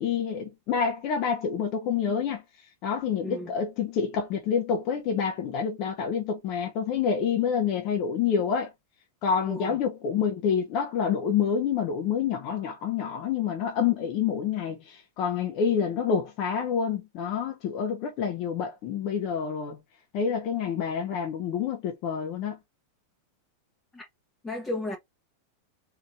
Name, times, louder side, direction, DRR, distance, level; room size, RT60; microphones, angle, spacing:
voice 1, 0.0-2.4 2.8-8.7 9.2-19.8 20.1-22.6, left 7 dB, 40° left, 1.0 m, -27 dB
voice 2, 24.4-25.0, left 1 dB, 10° left, 1.1 m, -33 dB
4.2 x 3.9 x 2.6 m
figure-of-eight pair, 90°, 0 cm